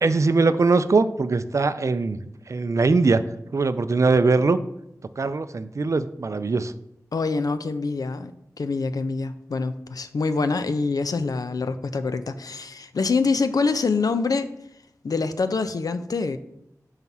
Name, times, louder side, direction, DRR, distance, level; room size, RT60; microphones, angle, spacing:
voice 1, 0.0-2.2 2.5-3.2 3.5-4.6 5.2-6.7, right 3 dB, 55° right, 13 dB, 0.4 m, -21 dB
voice 2, 7.1-8.3 8.6-14.5 15.0-16.4, left 4 dB, 75° left, 10 dB, 0.5 m, -25 dB
5.6 x 4.7 x 5.5 m, 0.79 s
wide cardioid pair, 85°, 6 cm